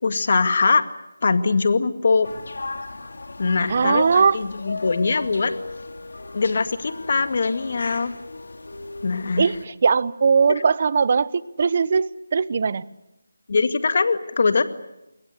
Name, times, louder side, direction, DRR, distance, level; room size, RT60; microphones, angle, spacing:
voice 1, 0.0-0.9 1.2-2.3 3.4-5.5 6.3-8.1 9.0-9.5 10.5-10.6 13.5-14.6, left 4 dB, 50° left, 11 dB, 2.1 m, -22 dB
sound 1, 2.2-9.6, left 2 dB, 75° left, 3.1 m, -37 dB
voice 2, 3.7-4.4 9.4-12.8, right 5 dB, 40° right, 19 dB, 0.9 m, -20 dB
28.5 x 21.5 x 8.2 m, 0.91 s
figure-of-eight pair, 170°, 0 cm